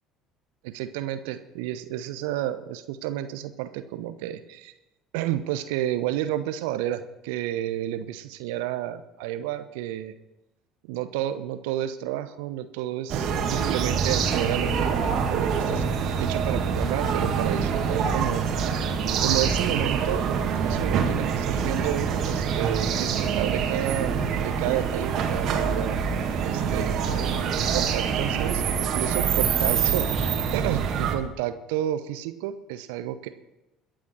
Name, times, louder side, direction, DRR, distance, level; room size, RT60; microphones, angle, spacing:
voice 1, 0.6-4.7 5.1-10.1 10.9-15.0 15.3-15.8 16.2-18.7 19.2-20.2 20.6-26.0 26.4-30.3 30.5-33.3, right 12 dB, 65° right, 11 dB, 0.8 m, -31 dB
sound 1, 13.1-31.2, right 6 dB, 50° right, 2.2 m, -25 dB
22.0 x 7.6 x 6.1 m, 0.96 s
figure-of-eight pair, 60°, 0 cm